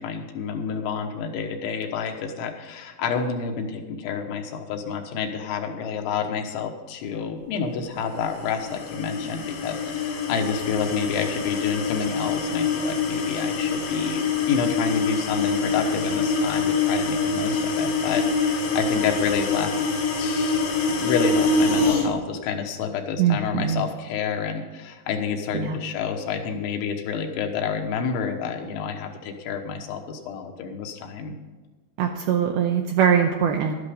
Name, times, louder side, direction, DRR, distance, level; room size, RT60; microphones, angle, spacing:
voice 1, 0.0-19.9 20.2-31.3, left 6 dB, 80° left, 3 dB, 3.5 m, -29 dB
sound 1, 8.2-22.1, left 4 dB, 65° left, 1.8 m, -25 dB
voice 2, 23.2-23.8 25.5-25.8 32.0-33.7, right 8 dB, 80° right, 3 dB, 2.3 m, -22 dB
12.5 x 10.5 x 5.1 m, 1.3 s
omnidirectional pair, 5.3 m